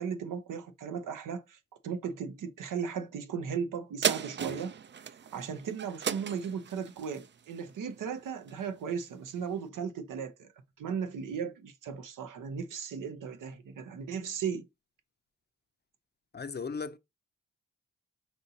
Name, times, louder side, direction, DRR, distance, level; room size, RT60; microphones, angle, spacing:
voice 1, 0.0-4.7 5.3-10.5 10.8-14.7, right 6 dB, 80° right, 0.7 m, -36 dB
sound 1, 4.0-8.8 9.3-9.4, right 8 dB, 35° right, 0.4 m, -36 dB
voice 2, 16.3-17.0, left 5 dB, 35° left, 0.5 m, -36 dB
5.2 x 2.8 x 2.7 m
supercardioid pair, 50°, 31 cm